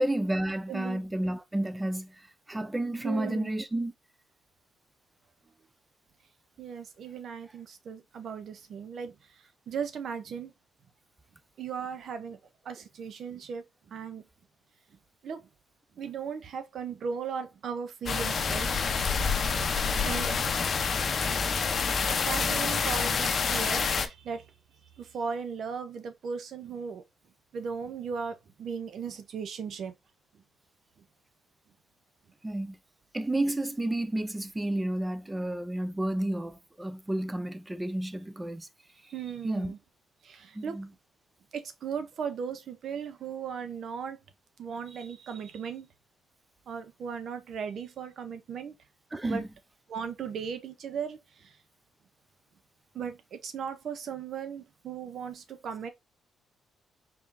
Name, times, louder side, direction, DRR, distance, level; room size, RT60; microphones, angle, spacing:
voice 1, 0.0-2.2 2.5-3.9 20.3-20.4 21.0-21.3 21.9-22.1 32.4-32.8 33.1-38.7 39.4-39.7 40.5-40.9 49.1-49.4, right 1 dB, 15° right, 0.5 m, -31 dB
voice 2, 0.7-1.0 3.0-3.5 6.6-10.5 11.6-12.4 12.6-14.2 15.2-15.4 16.0-18.7 20.0-20.3 22.2-24.5 25.0-27.0 27.5-29.9 39.1-39.8 40.2-40.8 41.5-44.2 44.6-45.9 46.7-48.7 49.2-49.4 49.9-51.6 52.9-55.9, right 6 dB, 60° right, 0.6 m, -37 dB
sound 1, 18.1-24.1, left 5 dB, 45° left, 0.6 m, -27 dB
4.3 x 3.6 x 2.5 m
cardioid pair, 90°, 0 cm